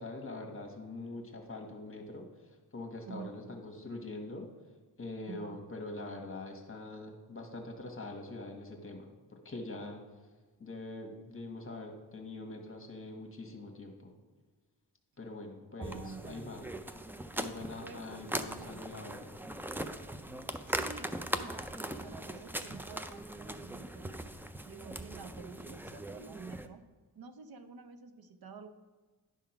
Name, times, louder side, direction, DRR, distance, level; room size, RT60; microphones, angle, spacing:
voice 1, 0.0-2.3 2.7-4.5 5.0-10.0 10.6-14.1 15.2-16.7 17.3-19.4, left 2 dB, 30° left, 2 dB, 1.4 m, -44 dB
voice 2, 3.1-3.4 5.3-5.6 15.8-16.5 17.8-18.0 18.6-18.8 20.7-21.6 21.9-24.2 24.6-26.8 27.1-28.7, right 5 dB, 60° right, 9 dB, 0.7 m, -49 dB
sound 1, 15.8-26.7, right 1 dB, 5° right, 0.4 m, -40 dB
10.5 x 3.6 x 5.9 m, 1.3 s
cardioid pair, 90°, 41 cm